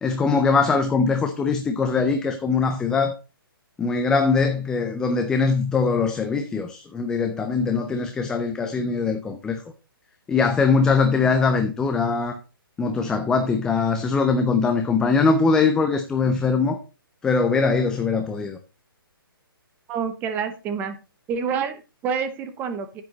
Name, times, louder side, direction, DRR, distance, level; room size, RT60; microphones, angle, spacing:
voice 1, 0.0-3.2 3.8-9.6 10.3-12.4 12.8-16.8 17.2-18.6, left 4 dB, 5° left, 0.4 m, -22 dB
voice 2, 19.9-20.9 21.3-23.0, right 6 dB, 15° right, 0.9 m, -28 dB
10.0 x 7.6 x 3.9 m
hypercardioid pair, 160°, 12 cm